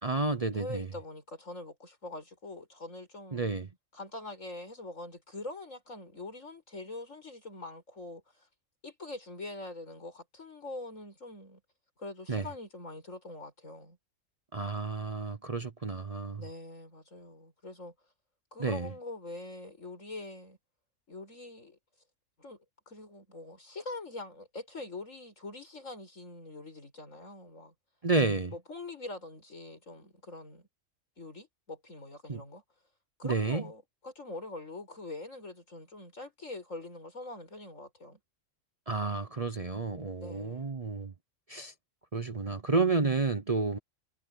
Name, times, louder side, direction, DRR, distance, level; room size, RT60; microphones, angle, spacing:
voice 1, 0.0-0.9 3.3-3.7 12.3-12.4 14.5-16.4 18.6-18.9 28.0-28.5 32.3-32.4 33.2-33.6 38.9-41.1 41.5-41.7 42.1-43.8, right 3 dB, 30° right, 0.8 m, -30 dB
voice 2, 0.5-3.5 3.9-8.5 8.8-11.6 12.0-14.0 16.4-17.9 18.5-20.6 21.1-21.8 22.4-22.6 22.9-27.7 28.5-30.7 31.2-32.6 33.2-38.2 40.2-40.7, left 2 dB, 80° left, 6.7 m, -44 dB
omnidirectional pair, 1.3 m